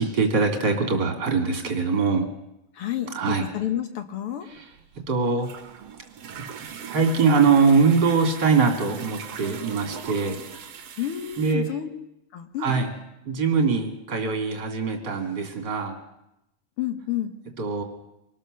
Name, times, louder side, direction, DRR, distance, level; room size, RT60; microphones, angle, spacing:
voice 1, 0.0-2.3 3.1-3.5 4.4-4.7 5.1-5.5 6.8-10.4 11.4-11.7 12.6-12.9 13.2-15.9 17.6-17.8, right 5 dB, 35° right, 3 dB, 3.0 m, -22 dB
voice 2, 2.8-4.5 11.0-11.9 12.3-12.7 16.8-17.3, left 11 dB, 55° left, 7 dB, 1.7 m, -30 dB
sound 1, 4.5-11.5, right 8 dB, 60° right, 2.2 m, -40 dB
25.0 x 19.0 x 6.6 m, 0.86 s
omnidirectional pair, 3.6 m